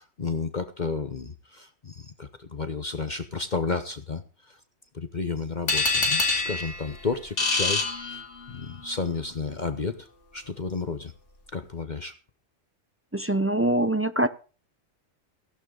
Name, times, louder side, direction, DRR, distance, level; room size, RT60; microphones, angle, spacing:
voice 1, 0.0-4.6 4.9-8.2 8.5-10.1 10.3-11.1 11.5-12.1, left 4 dB, 40° left, 9 dB, 1.0 m, -32 dB
sound 1, 5.7-8.7, left 3 dB, 65° left, 2.8 m, -26 dB
voice 2, 13.1-14.3, right 1 dB, 15° right, 11 dB, 0.4 m, -23 dB
16.0 x 11.5 x 3.9 m, 0.36 s
omnidirectional pair, 1.3 m